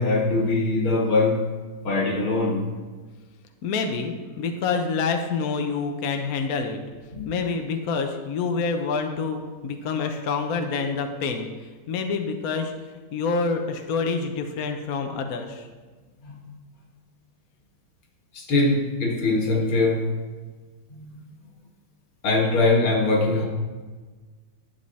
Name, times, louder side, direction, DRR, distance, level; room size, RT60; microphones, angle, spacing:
voice 1, 0.0-1.4 1.8-2.6 7.1-7.3 16.2-16.5 18.3-20.0 20.9-21.2 22.2-23.5, left 2 dB, 80° left, 0 dB, 2.6 m, -22 dB
voice 2, 3.6-6.8 7.2-11.5 11.9-12.7 13.1-15.6, left 4 dB, 55° left, 5 dB, 1.1 m, -27 dB
11.5 x 8.4 x 4.2 m, 1.4 s
omnidirectional pair, 2.3 m